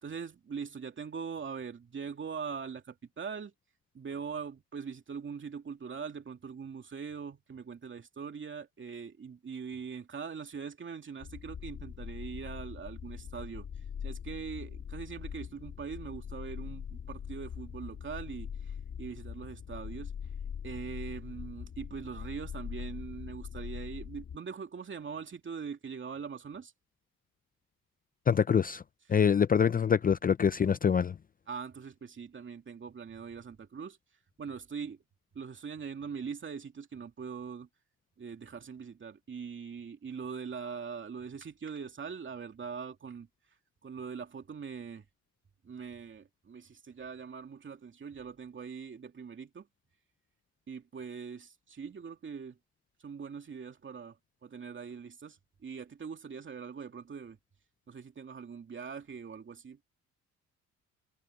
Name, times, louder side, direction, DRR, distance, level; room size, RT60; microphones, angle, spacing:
voice 1, 0.0-3.5 3.9-13.7 14.0-20.1 20.6-26.7 31.5-34.0 34.4-35.0 35.3-37.7 38.2-43.3 43.8-45.0 45.6-49.7 50.7-52.6 53.0-54.2 54.4-57.4 57.9-59.8, right 6 dB, 40° right, 2.8 m, -42 dB
sound 1, 11.2-24.4, left 7 dB, 50° left, 1.6 m, -42 dB
voice 2, 28.3-28.8 29.1-31.1, left 7 dB, 30° left, 0.5 m, -25 dB
cardioid pair, 90°, 30 cm